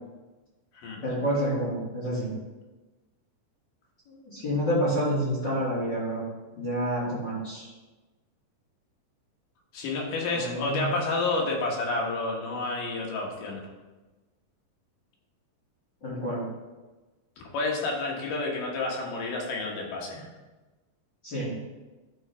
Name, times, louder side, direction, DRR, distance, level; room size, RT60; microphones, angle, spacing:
voice 1, 1.0-2.3 4.1-6.2 6.6-7.7 10.3-10.9 16.0-16.4 21.2-21.5, equal, 35° left, -10 dB, 2.3 m, -28 dB
voice 2, 9.7-13.6 17.4-20.3, left 3 dB, 75° left, -2 dB, 2.8 m, -30 dB
11.5 x 3.9 x 3.4 m, 1.2 s
omnidirectional pair, 4.0 m